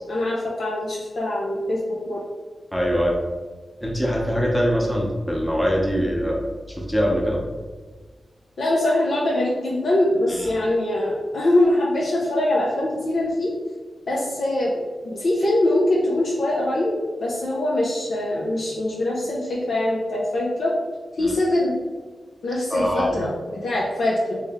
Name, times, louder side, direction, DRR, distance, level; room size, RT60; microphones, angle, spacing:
voice 1, 0.1-2.2 8.6-13.5 14.1-20.7 21.1-21.7 22.4-24.4, left 1 dB, 75° left, -4 dB, 0.6 m, -23 dB
voice 2, 2.7-3.2 3.8-7.4 10.3-10.5 21.2-21.3 22.7-23.2, equal, 5° left, -3 dB, 0.8 m, -23 dB
3.1 x 2.9 x 3.5 m, 1.4 s
cardioid pair, 70°, 0 cm